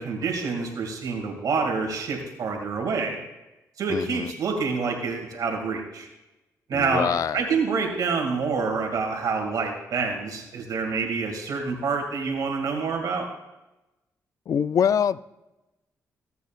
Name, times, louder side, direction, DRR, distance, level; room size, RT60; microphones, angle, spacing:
voice 1, 0.0-3.2 3.8-6.1 6.7-13.3, right 4 dB, 65° right, 2 dB, 2.2 m, -27 dB
voice 2, 3.9-4.3 6.7-7.4 14.5-15.2, left 8 dB, 55° left, 16 dB, 0.4 m, -24 dB
16.0 x 8.1 x 2.4 m, 0.99 s
cardioid pair, 70°, 7 cm